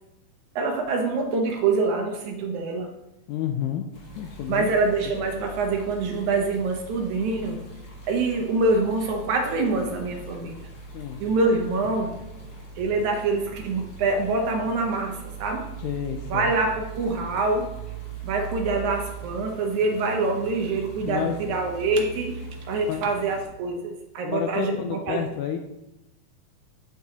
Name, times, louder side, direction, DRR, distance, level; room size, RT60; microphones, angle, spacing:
voice 1, 0.6-3.0 4.5-7.7 8.1-10.7 11.2-12.2 12.8-15.7 16.3-17.7 18.2-25.2, right 3 dB, 75° right, 3 dB, 1.9 m, -25 dB
voice 2, 3.3-3.8 4.2-4.8 10.9-11.2 15.8-16.5 21.0-21.4 22.9-23.1 24.2-25.6, left 9 dB, 80° left, 5 dB, 1.8 m, -30 dB
sound 1, 3.9-23.4, right 4 dB, 45° left, 1.2 m, -40 dB
8.9 x 6.9 x 2.8 m, 0.92 s
omnidirectional pair, 3.9 m